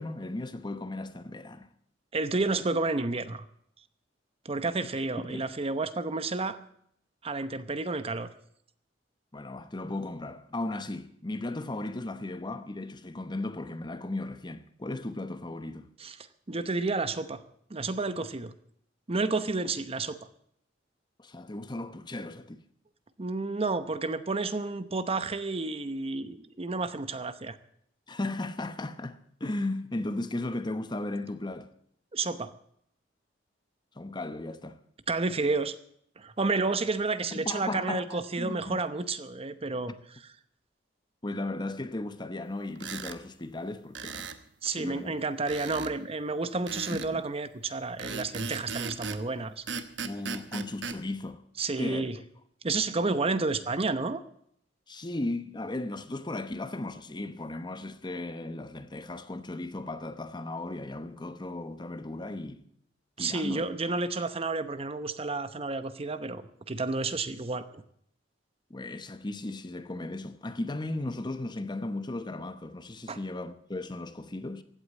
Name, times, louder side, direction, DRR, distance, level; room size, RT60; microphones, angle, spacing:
voice 1, 0.0-1.7 5.3-5.5 9.3-15.9 21.2-22.6 28.1-31.7 33.9-34.8 37.3-38.8 41.2-44.3 44.8-45.2 46.9-47.2 50.0-51.4 51.8-52.3 54.9-62.7 63.2-63.7 68.7-74.6, left 2 dB, 25° left, 0.9 m, -36 dB
voice 2, 2.1-3.5 4.4-6.6 7.2-8.3 16.0-16.2 16.5-17.4 17.7-18.5 19.1-20.2 23.2-27.6 32.1-32.5 35.1-35.8 36.2-39.9 44.6-49.6 51.6-52.2 52.6-54.2 63.2-67.8 73.1-73.2, right 3 dB, 35° right, 0.8 m, -30 dB
sound 1, 42.8-43.2 43.9-44.4 45.5-45.9 46.7-47.1 48.0-49.2 49.7-51.0, right 5 dB, 75° right, 1.1 m, -37 dB
16.0 x 8.7 x 8.6 m
head